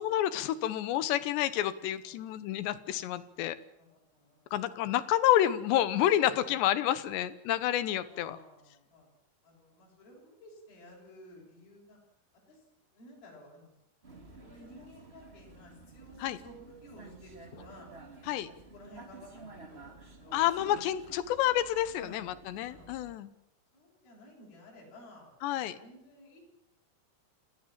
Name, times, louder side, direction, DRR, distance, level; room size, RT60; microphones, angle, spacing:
voice 1, 0.0-3.6 4.5-8.4 16.2-16.4 18.3-18.5 20.3-23.3 25.4-25.8, left 12 dB, 75° left, 14 dB, 3.2 m, -29 dB
voice 2, 2.0-2.4 3.9-4.5 6.4-6.5 8.1-9.1 9.4-12.0 12.5-12.6 12.9-13.7 14.1-17.9 18.4-20.5 22.0-22.3 22.7-23.2 23.7-26.5, left 1 dB, 50° left, -2 dB, 8.5 m, -54 dB
Vehicle, 14.0-23.2, right 3 dB, 20° right, 1.6 m, -52 dB
28.0 x 18.0 x 7.6 m, 0.79 s
omnidirectional pair, 5.4 m